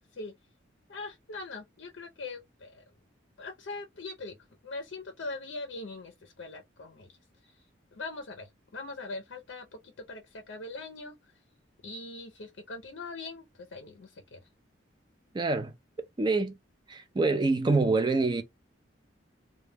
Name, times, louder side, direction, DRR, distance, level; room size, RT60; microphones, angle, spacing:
voice 1, 0.9-2.8 3.4-4.4 4.6-7.2 7.4-7.6 7.9-11.3 11.8-14.4, left 3 dB, 70° left, 0.5 m, -41 dB
voice 2, 15.3-15.7 16.2-16.5 16.9-18.4, right 3 dB, 25° right, 0.3 m, -26 dB
2.1 x 2.1 x 3.2 m
head